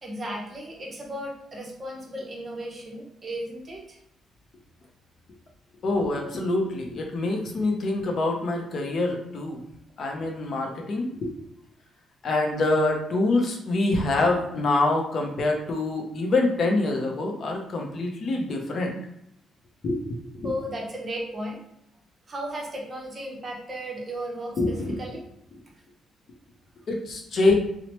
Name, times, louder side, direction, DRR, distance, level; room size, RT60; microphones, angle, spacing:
voice 1, 0.0-4.0 20.4-21.6 22.3-25.2, equal, 35° right, -1 dB, 0.7 m, -35 dB
voice 2, 5.8-9.6 10.0-11.3 12.2-19.0 19.8-20.5 24.6-25.0 26.9-27.6, left 2 dB, 50° left, 1 dB, 0.5 m, -25 dB
2.9 x 2.0 x 3.0 m, 0.78 s
cardioid pair, 115°, 0 cm